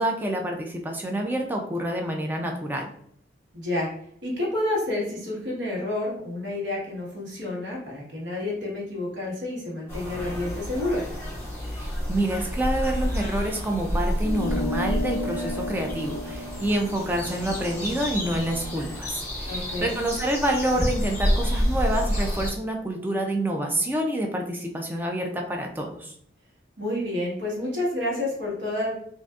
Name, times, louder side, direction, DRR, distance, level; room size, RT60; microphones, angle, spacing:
voice 1, 0.0-2.9 11.7-26.1, right 1 dB, 10° right, 2 dB, 0.3 m, -27 dB
voice 2, 3.5-3.9 4.2-11.0 19.5-19.9 26.8-28.9, left 1 dB, 75° right, -4 dB, 1.3 m, -29 dB
sound 1, 9.9-22.5, equal, 10° left, 0.7 m, -29 dB
sound 2, 14.2-19.0, left 1 dB, 60° left, 0.4 m, -34 dB
3.7 x 2.5 x 2.3 m, 0.66 s
head